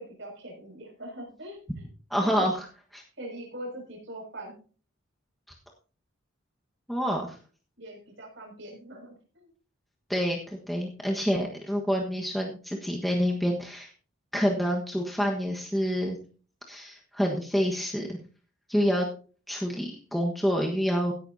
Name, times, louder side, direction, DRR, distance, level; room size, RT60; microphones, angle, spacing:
voice 1, 0.0-1.8 2.2-2.5 3.2-4.5 7.8-9.5, right 1 dB, 60° right, -1 dB, 6.2 m, -42 dB
voice 2, 2.1-2.5 2.9-3.0 6.9-7.4 10.1-13.9 14.3-16.2 16.7-18.2 18.7-19.1 19.5-21.1, equal, ahead, -1 dB, 1.4 m, -27 dB
16.5 x 11.5 x 2.8 m, 0.38 s
head